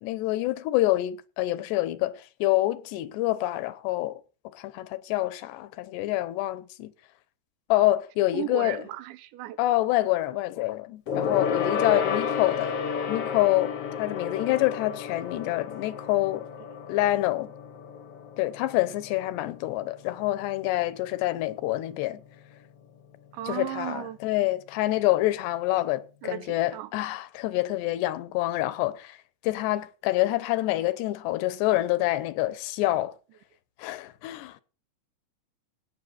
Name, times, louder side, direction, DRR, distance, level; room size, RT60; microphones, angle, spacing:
voice 1, 0.0-4.2 4.5-6.9 7.7-8.8 9.6-12.7 13.1-16.5 16.9-17.5 18.4-22.2 23.5-29.2 29.4-33.1 33.8-34.6, left 16 dB, 80° left, 3.0 m, -27 dB
voice 2, 8.3-9.6 23.3-24.2 26.2-26.9, right 14 dB, 90° right, 3.3 m, -35 dB
Gong, 11.1-20.8 21.1-21.4 21.7-21.8, left 7 dB, 55° left, 1.6 m, -32 dB
17.5 x 5.9 x 9.4 m
omnidirectional pair, 5.0 m